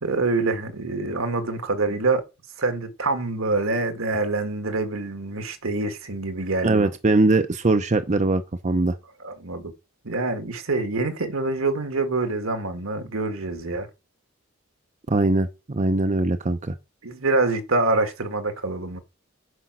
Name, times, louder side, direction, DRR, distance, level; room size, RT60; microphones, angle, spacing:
voice 1, 0.0-2.2 2.6-6.9 9.2-9.7 10.0-13.9 17.0-19.0, right 3 dB, 75° right, 1.6 m, -25 dB
voice 2, 6.6-9.0 15.1-16.7, right 2 dB, 35° right, 0.7 m, -21 dB
9.9 x 5.3 x 6.0 m
head